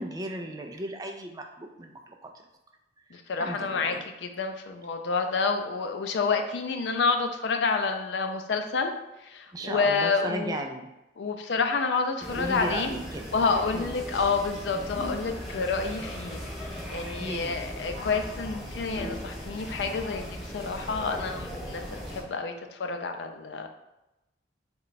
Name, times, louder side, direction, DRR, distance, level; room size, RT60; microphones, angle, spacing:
voice 1, 0.0-2.4 3.1-4.0 9.5-10.9 12.3-13.2 13.7-13.9 17.2-17.6, right 1 dB, 20° right, 4 dB, 0.3 m, -36 dB
voice 2, 3.1-8.9 9.2-10.6 11.2-13.0 13.3-16.4 16.9-23.7, left 4 dB, 80° left, 5 dB, 0.4 m, -29 dB
sound 1, 12.2-22.2, equal, ahead, 0.7 m, -38 dB
3.2 x 2.2 x 3.9 m, 0.95 s
head